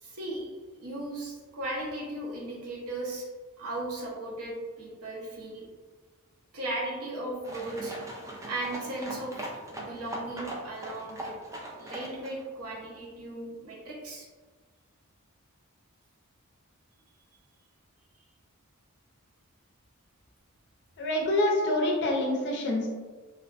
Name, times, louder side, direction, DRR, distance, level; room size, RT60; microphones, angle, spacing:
voice 1, 0.0-3.3 3.6-5.6 6.5-7.9 8.5-9.3 9.7-11.3 11.8-14.2, right 2 dB, 85° right, -3 dB, 0.6 m, -36 dB
sound 1, 7.4-12.4, right 1 dB, 15° right, 0.3 m, -40 dB
voice 2, 21.0-22.9, left 1 dB, 55° left, 0 dB, 0.5 m, -26 dB
2.4 x 2.1 x 2.4 m, 1.4 s
head